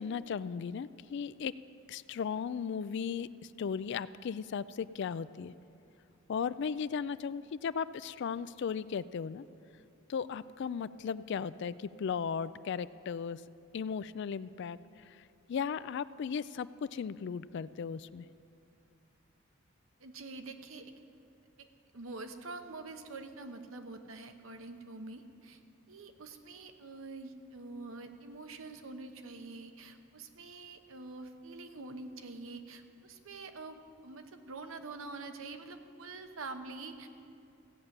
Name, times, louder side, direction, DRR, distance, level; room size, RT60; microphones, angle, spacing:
voice 1, 0.0-1.5 1.9-3.3 3.6-5.5 6.3-9.4 10.1-13.4 13.7-14.8 15.1-15.2 15.5-18.3, left 6 dB, 60° left, 17 dB, 0.3 m, -36 dB
voice 2, 20.0-20.9 21.6-21.7 21.9-25.6 25.9-37.1, right 3 dB, 80° right, 7 dB, 1.0 m, -46 dB
15.5 x 8.8 x 6.5 m, 2.5 s
head